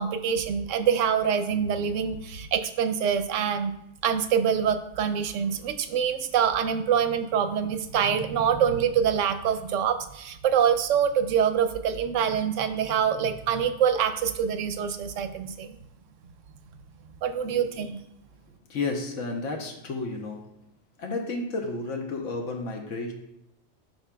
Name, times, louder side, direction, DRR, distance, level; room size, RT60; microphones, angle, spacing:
voice 1, 0.0-3.7 4.0-15.8 17.2-18.0, right 8 dB, 90° right, 9 dB, 1.0 m, -25 dB
voice 2, 18.7-20.5 21.0-23.1, left 3 dB, 90° left, 2 dB, 1.2 m, -32 dB
11.5 x 4.1 x 2.3 m, 0.81 s
omnidirectional pair, 1.3 m